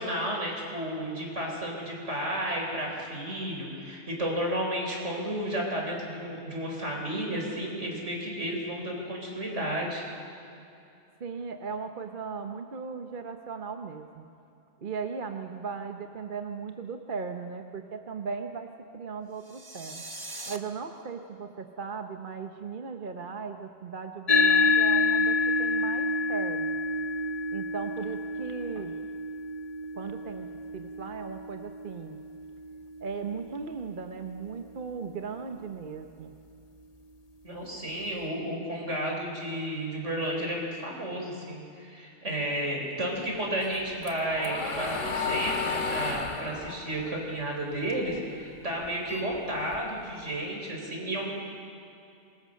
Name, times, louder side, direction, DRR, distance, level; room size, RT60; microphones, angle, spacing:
voice 1, 0.0-10.0 37.4-51.3, right 1 dB, 70° right, -1 dB, 4.8 m, -32 dB
voice 2, 11.2-14.3 14.8-18.7 18.9-20.0 20.5-26.8 27.5-29.0 29.9-30.5 30.7-32.2 33.0-36.3, right 5 dB, 45° right, 5 dB, 1.1 m, -37 dB
sound 1, 19.4-20.6, right 2 dB, 20° right, 1.1 m, -41 dB
sound 2, 24.3-33.0, left 3 dB, 30° left, 1.1 m, -28 dB
sound 3, 43.6-48.1 48.5-50.1, left 4 dB, 80° left, 2.3 m, -33 dB
26.0 x 21.0 x 6.4 m, 2.6 s
omnidirectional pair, 1.3 m